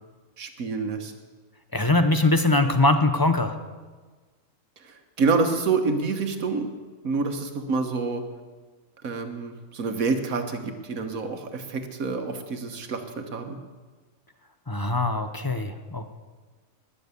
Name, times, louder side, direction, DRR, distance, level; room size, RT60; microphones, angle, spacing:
voice 1, 0.4-1.1 4.8-6.7 7.0-8.2 9.0-13.6, right 4 dB, 80° right, 6 dB, 1.7 m, -27 dB
voice 2, 1.7-3.6 14.7-16.1, left 2 dB, 20° left, 8 dB, 0.7 m, -22 dB
20.0 x 7.0 x 8.3 m, 1.4 s
omnidirectional pair, 1.4 m